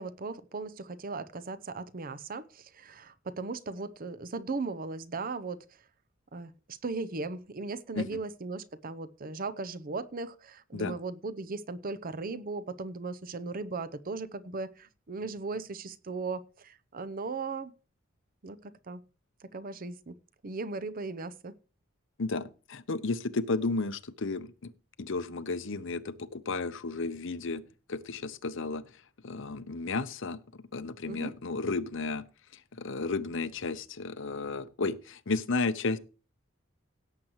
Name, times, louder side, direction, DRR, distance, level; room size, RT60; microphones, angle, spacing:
voice 1, 0.0-5.7 6.3-17.7 18.4-19.0 19.4-20.2 20.4-21.5 31.1-31.3, right 3 dB, 45° right, 0.7 m, -37 dB
voice 2, 22.2-24.7 25.0-27.6 27.9-28.8 29.2-30.4 30.7-32.2 32.5-36.0, left 3 dB, 65° left, 0.8 m, -33 dB
17.5 x 7.8 x 3.1 m
head